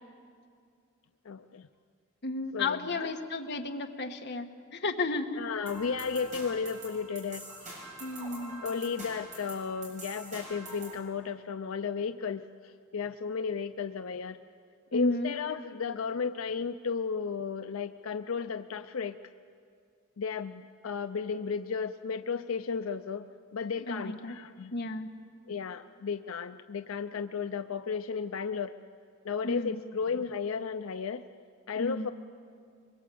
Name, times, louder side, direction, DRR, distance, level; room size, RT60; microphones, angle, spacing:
voice 1, 1.2-1.7 2.5-3.1 5.4-7.7 8.6-14.4 14.9-19.2 20.2-23.3 23.5-24.7 25.5-28.7 29.2-31.2 31.7-32.1, left 5 dB, 90° left, 10 dB, 0.5 m, -34 dB
voice 2, 2.2-5.4 8.0-8.6 14.9-15.3 23.9-24.3 24.7-25.1 29.4-29.8 31.8-32.1, left 2 dB, 55° left, 5 dB, 1.4 m, -33 dB
sound 1, 5.7-11.0, right 1 dB, 35° right, 7.5 m, -45 dB
23.5 x 21.5 x 8.5 m, 2.4 s
head